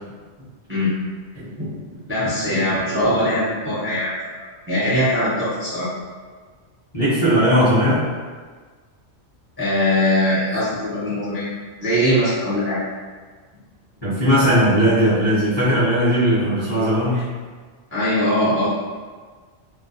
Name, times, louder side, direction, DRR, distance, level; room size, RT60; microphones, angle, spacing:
voice 1, 0.4-0.9 1.4-1.8 2.1-4.1 4.7-5.9 9.6-11.5 11.8-12.8 17.9-18.7, left 1 dB, 15° right, -11 dB, 0.5 m, -21 dB
voice 2, 6.9-8.0 14.0-17.2, equal, 25° left, -12 dB, 0.6 m, -18 dB
2.2 x 2.2 x 2.7 m, 1.5 s
omnidirectional pair, 1.2 m